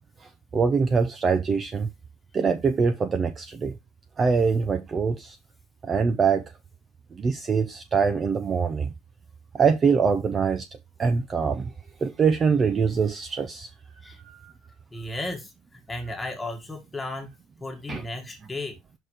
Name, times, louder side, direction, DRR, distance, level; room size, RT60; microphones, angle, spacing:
voice 1, 0.5-1.9 2.3-3.7 4.2-5.4 5.8-6.4 7.2-8.9 9.5-10.6 11.0-11.7 12.0-13.7 14.2-14.5 17.9-18.0, right 5 dB, 20° right, 0.6 m, -23 dB
voice 2, 14.9-18.8, left 2 dB, 10° left, 1.7 m, -35 dB
6.0 x 4.7 x 4.8 m
cardioid pair, 170°, 0 cm